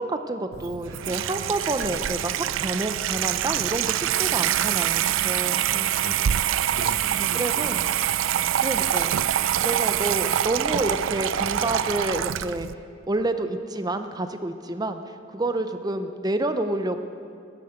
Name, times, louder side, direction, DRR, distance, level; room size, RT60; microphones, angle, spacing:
voice 1, 0.0-5.6 7.3-7.9 8.6-9.2 9.6-12.7 13.1-17.0, right 2 dB, 20° right, 9 dB, 0.6 m, -29 dB
Water tap faucet / Sink (filling or washing), 0.5-12.7, right 11 dB, 70° right, 0.4 m, -25 dB
voice 2, 5.6-6.4 6.8-8.2, left 1 dB, 50° left, 9 dB, 0.9 m, -40 dB
13.5 x 11.0 x 7.9 m, 2.3 s
head